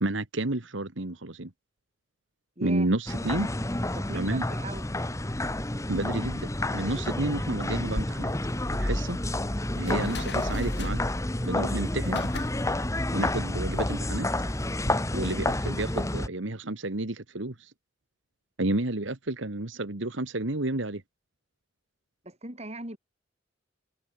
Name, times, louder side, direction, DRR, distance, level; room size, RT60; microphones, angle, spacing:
voice 1, 0.0-1.5 2.6-3.5 4.1-4.4 5.9-8.3 8.8-9.2 9.8-11.0 11.4-12.2 13.1-14.3 15.1-17.5 18.6-21.0, right 2 dB, 80° right, 1.9 m, -30 dB
voice 2, 2.6-2.9 3.3-3.4 3.9-4.9 22.2-23.0, right 1 dB, 35° right, 6.9 m, -39 dB
sound 1, 3.1-16.3, left 1 dB, 15° left, 1.3 m, -29 dB
sound 2, 7.9-14.9, left 2 dB, 60° left, 3.6 m, -41 dB
head